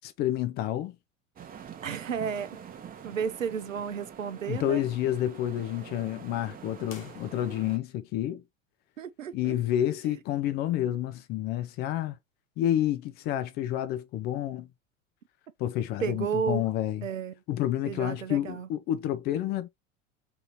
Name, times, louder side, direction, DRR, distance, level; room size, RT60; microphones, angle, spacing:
voice 1, 0.0-0.9 4.5-8.4 9.3-12.2 12.6-14.7 15.6-17.1 17.5-19.7, left 12 dB, 30° left, 0.4 m, -29 dB
sound 1, 1.4-7.8, right 8 dB, 25° right, 0.8 m, -46 dB
voice 2, 1.8-2.6 3.0-4.8 9.0-9.6 10.0-10.1 16.0-16.6 17.0-17.4 17.9-18.7, right 7 dB, 80° right, 0.6 m, -32 dB
sound 2, 6.8-7.9, left 4 dB, 90° left, 0.8 m, -51 dB
3.7 x 2.9 x 4.0 m
figure-of-eight pair, 80°, 38 cm